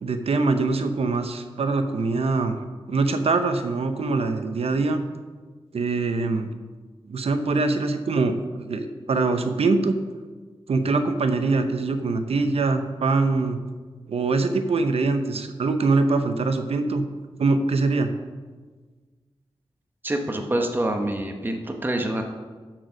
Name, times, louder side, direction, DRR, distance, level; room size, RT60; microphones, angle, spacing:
voice 1, 0.0-2.6 2.9-5.0 5.7-6.5 7.1-9.9 10.7-13.6 14.1-17.0 17.4-18.1, right 3 dB, 80° right, 8 dB, 0.8 m, -23 dB
voice 2, 20.0-22.2, right 1 dB, 20° right, 3 dB, 0.9 m, -26 dB
12.5 x 4.6 x 5.1 m, 1.4 s
wide cardioid pair, 120°, 10 cm